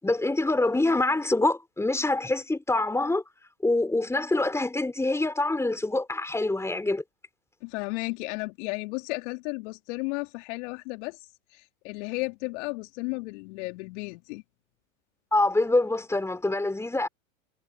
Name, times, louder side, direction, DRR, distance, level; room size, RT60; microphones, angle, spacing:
voice 1, 0.0-3.2 3.6-7.0 15.3-17.1, left 2 dB, 5° left, 4.7 m, -25 dB
voice 2, 7.6-11.2 11.5-14.4, left 28 dB, 55° left, 3.1 m, -34 dB
hypercardioid pair, 95°, 43 cm